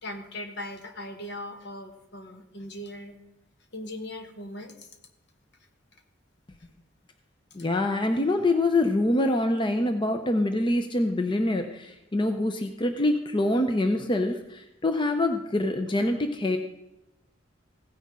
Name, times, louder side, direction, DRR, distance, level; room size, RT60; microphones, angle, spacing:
voice 1, 0.0-3.2 3.7-5.0, left 1 dB, 65° left, 6 dB, 1.3 m, -39 dB
voice 2, 7.5-16.6, left 1 dB, 25° left, 6 dB, 0.6 m, -25 dB
16.0 x 9.7 x 3.7 m, 0.93 s
head